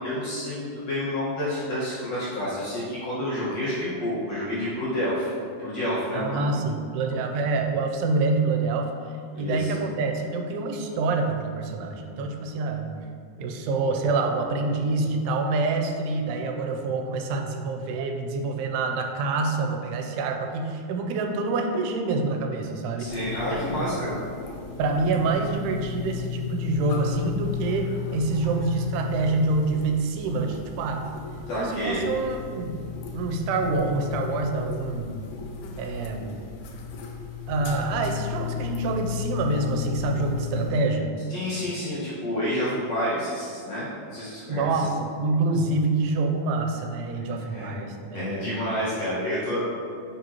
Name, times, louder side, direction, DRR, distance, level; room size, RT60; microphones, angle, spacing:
voice 1, 0.0-5.3 5.6-6.5 9.3-9.7 23.0-24.1 31.5-32.0 41.3-44.7 47.4-47.7 48.1-49.6, left 1 dB, 60° left, -10 dB, 2.0 m, -29 dB
voice 2, 6.1-9.0 9.4-12.9 13.4-23.1 23.8-23.9 24.8-31.1 31.5-32.8 33.1-35.2 35.8-36.4 37.5-41.1 44.5-48.5, right 3 dB, 85° right, 4 dB, 2.7 m, -26 dB
sound 1, 23.0-40.7, left 7 dB, 85° left, 2.8 m, -34 dB
7.3 x 5.4 x 2.9 m, 2.4 s
omnidirectional pair, 4.6 m